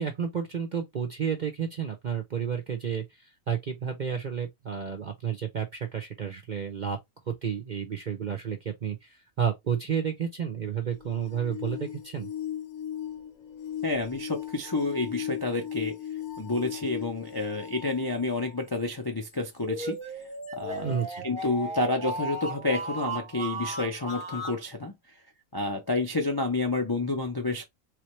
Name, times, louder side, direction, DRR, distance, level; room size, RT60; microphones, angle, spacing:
voice 1, 0.0-3.0 3.5-7.0 7.3-12.3 20.8-21.2, right 7 dB, 50° right, 0.6 m, -31 dB
sound 1, 11.0-18.6 19.3-19.4 20.4-20.5, left 10 dB, 70° left, 1.2 m, -38 dB
voice 2, 13.8-16.0 16.4-20.0 20.6-21.0 21.2-24.9 25.5-27.6, left 2 dB, 35° left, 0.4 m, -29 dB
sound 2, 19.6-24.6, right 2 dB, 20° right, 1.1 m, -36 dB
3.5 x 3.2 x 3.0 m
omnidirectional pair, 1.5 m